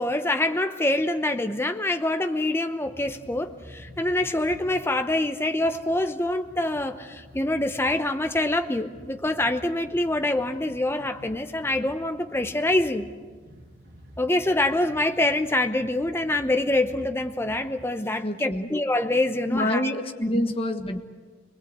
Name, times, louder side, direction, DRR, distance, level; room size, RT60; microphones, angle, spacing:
voice 1, 0.0-13.1 14.2-19.9 20.3-20.4, left 1 dB, 15° left, 7 dB, 0.8 m, -25 dB
sound 1, 2.8-17.8, equal, 45° right, 6.0 m, -49 dB
voice 2, 18.2-18.7 19.5-21.0, left 1 dB, 30° left, 5 dB, 1.4 m, -27 dB
26.0 x 20.5 x 8.1 m, 1.4 s
head